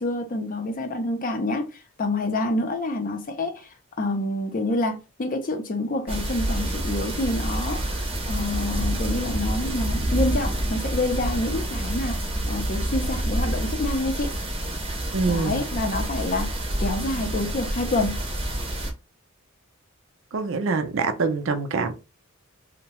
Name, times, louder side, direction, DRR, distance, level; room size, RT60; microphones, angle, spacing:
voice 1, 0.0-14.3 15.3-18.2, left 2 dB, 40° left, 0.5 m, -28 dB
sound 1, 6.1-18.9, right 1 dB, 25° right, 0.7 m, -28 dB
voice 2, 15.1-15.6 20.3-21.9, right 4 dB, 65° right, 0.5 m, -25 dB
2.7 x 2.1 x 2.9 m
head